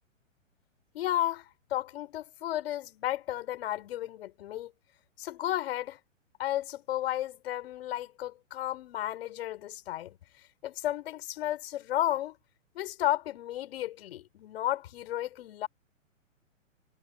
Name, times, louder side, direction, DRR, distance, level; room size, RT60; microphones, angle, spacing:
voice 1, 0.9-1.4 1.7-4.7 5.2-6.0 6.4-10.1 10.6-12.4 12.7-15.7, left 13 dB, 50° left, 5.8 m, -33 dB
figure-of-eight pair, 115°, 39 cm